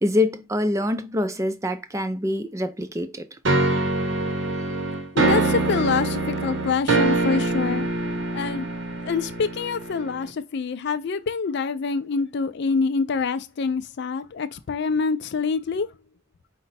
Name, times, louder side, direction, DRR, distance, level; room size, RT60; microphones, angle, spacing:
voice 1, 0.0-3.4, left 1 dB, 15° right, 0.4 m, -25 dB
sound 1, 3.5-10.3, right 2 dB, 60° right, 0.8 m, -24 dB
voice 2, 5.1-7.9 8.3-8.7 9.0-15.9, left 5 dB, 55° left, 0.4 m, -26 dB
4.9 x 2.2 x 4.0 m
head